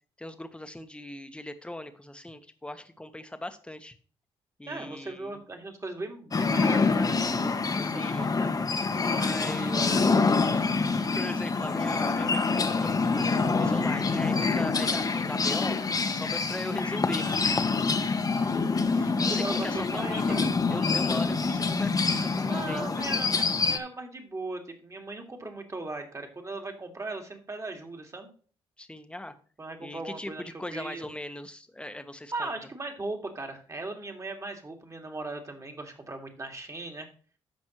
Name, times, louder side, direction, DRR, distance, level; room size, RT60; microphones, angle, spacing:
voice 1, 0.2-3.9 4.6-5.4 7.9-8.3 9.0-9.8 11.1-15.8 16.1-17.4 19.2-20.3 20.7-23.4 28.8-29.4 29.8-32.5, left 1 dB, 10° left, 9 dB, 1.2 m, -39 dB
voice 2, 4.7-8.6 9.4-10.7 18.2-20.5 22.5-28.3 29.6-30.4 30.7-31.1 32.3-37.1, right 2 dB, 30° right, 3 dB, 2.2 m, -38 dB
sound 1, 6.3-23.8, left 4 dB, 35° left, 1.1 m, -26 dB
13.5 x 5.2 x 3.1 m, 0.42 s
supercardioid pair, 60°, 11 cm